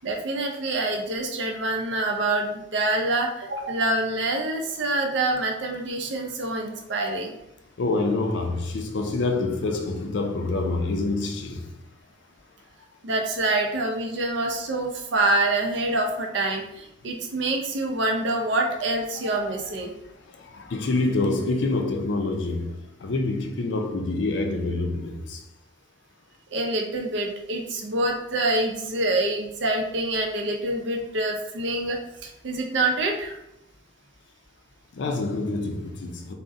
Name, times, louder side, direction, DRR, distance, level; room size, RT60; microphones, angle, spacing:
voice 1, 0.0-7.4 13.0-19.9 26.5-33.4, right 2 dB, 75° right, 0.5 m, -26 dB
voice 2, 7.8-11.6 20.5-25.4 34.9-36.3, left 2 dB, 75° left, 0.4 m, -26 dB
3.6 x 2.0 x 2.6 m
head